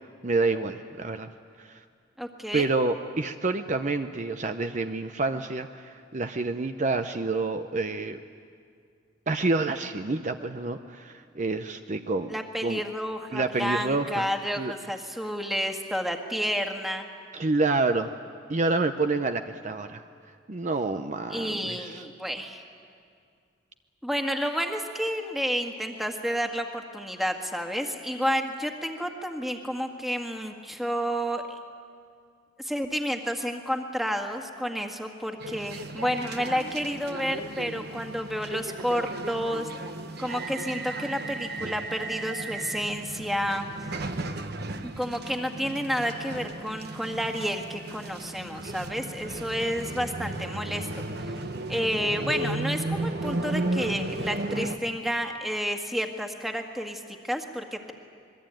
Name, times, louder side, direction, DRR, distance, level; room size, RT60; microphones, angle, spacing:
voice 1, 0.2-1.3 1.6-1.8 2.5-8.2 9.3-12.3 12.6-12.8 13.3-14.3 14.5-14.7 17.3-18.1 18.5-20.0 20.5-22.0, right 3 dB, 40° right, 8 dB, 0.7 m, -28 dB
voice 2, 2.2-2.7 12.3-17.1 21.3-22.6 24.0-31.4 32.6-39.7 40.2-43.7 45.0-50.9 51.2-51.3 51.7-57.9, equal, ahead, 3 dB, 1.7 m, -30 dB
sound 1, 35.4-54.8, right 2 dB, 60° right, 1.2 m, -34 dB
26.0 x 22.0 x 9.1 m, 2.2 s
head